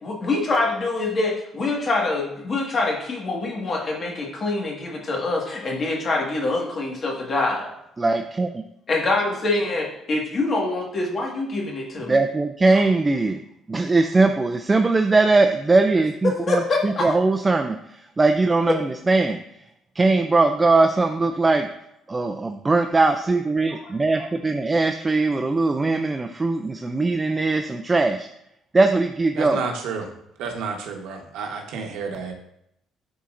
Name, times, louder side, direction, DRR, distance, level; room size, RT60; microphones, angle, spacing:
voice 1, 0.0-7.7 8.9-12.2 12.7-12.8 16.2-17.1 23.8-23.9, left 2 dB, 35° left, 0 dB, 1.7 m, -25 dB
voice 2, 8.0-8.6 12.1-13.4 13.7-19.4 19.9-21.7 22.1-28.3 28.7-29.7, right 3 dB, 20° right, 6 dB, 0.4 m, -20 dB
voice 3, 29.3-30.1 30.4-32.3, right 5 dB, 80° right, 2 dB, 1.1 m, -30 dB
11.5 x 4.1 x 2.5 m, 0.80 s
cardioid pair, 130°, 0 cm